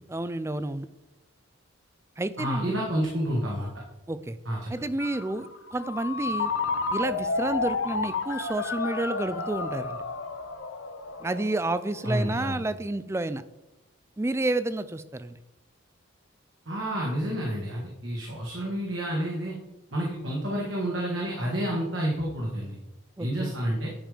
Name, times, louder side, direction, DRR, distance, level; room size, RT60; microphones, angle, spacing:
voice 1, 0.1-0.9 2.2-2.7 4.1-4.4 4.7-6.5 6.9-10.0 11.2-13.4 14.2-15.4 23.2-23.5, right 2 dB, 15° right, 13 dB, 0.3 m, -30 dB
voice 2, 2.4-3.7 4.4-4.7 12.0-12.6 16.6-19.5 19.9-22.8 23.2-23.9, equal, 60° right, -3 dB, 1.8 m, -29 dB
Ringtone, 5.0-12.5, left 4 dB, 65° left, 0.9 m, -32 dB
10.5 x 5.4 x 5.0 m, 0.95 s
head